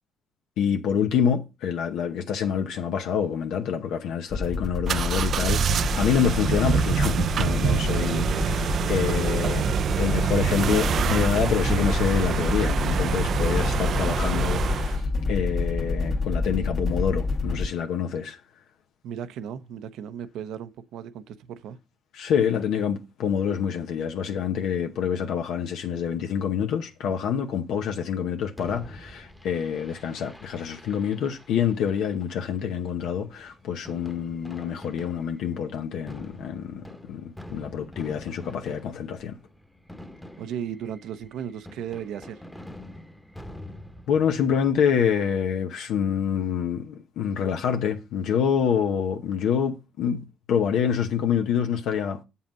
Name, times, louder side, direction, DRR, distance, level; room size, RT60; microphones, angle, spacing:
voice 1, 0.6-18.4 22.1-39.4 44.1-52.2, left 7 dB, 85° left, 0.8 m, -27 dB
sound 1, 4.3-17.7, left 3 dB, 50° left, 1.5 m, -28 dB
sound 2, 4.9-15.0, right 8 dB, 60° right, 0.4 m, -26 dB
voice 2, 19.0-21.8 40.4-42.4, right 9 dB, 85° right, 0.8 m, -35 dB
Fireworks, 28.6-44.7, left 1 dB, 5° left, 1.0 m, -46 dB
7.4 x 5.7 x 5.3 m
cardioid pair, 90°, 0 cm